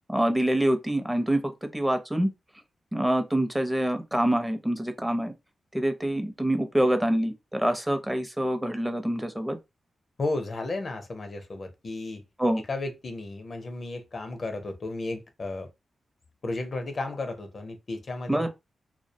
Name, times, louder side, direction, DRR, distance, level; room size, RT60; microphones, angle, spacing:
voice 1, 0.1-2.3 2.9-5.3 5.7-9.6 12.4-12.6 18.3-18.5, right 1 dB, 10° right, 0.6 m, -26 dB
voice 2, 10.2-12.2 12.7-15.7 16.4-18.5, left 2 dB, 50° left, 0.5 m, -33 dB
2.3 x 2.0 x 2.7 m
cardioid pair, 70°, 0 cm